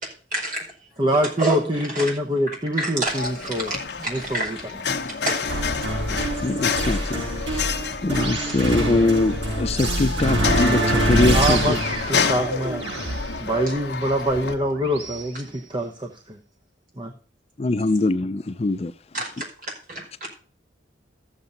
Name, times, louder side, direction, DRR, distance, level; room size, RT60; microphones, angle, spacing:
voice 1, 0.3-0.6 1.4-2.1 2.5-4.5 5.2-5.4 19.1-20.3, right 2 dB, 45° right, 0 dB, 4.9 m, -29 dB
voice 2, 1.0-3.7 4.1-4.6 11.3-11.8 12.1-12.9 13.4-16.4 17.0-17.1, equal, 25° right, 4 dB, 0.9 m, -24 dB
sound 1, 3.1-14.6, left 5 dB, 65° left, 1.0 m, -29 dB
sound 2, 5.5-15.2, right 1 dB, 85° right, 5.5 m, -25 dB
voice 3, 6.4-7.8 8.0-11.8 17.6-18.9, left 2 dB, 35° left, 12 dB, 0.4 m, -23 dB
14.0 x 7.4 x 3.9 m, 0.39 s
head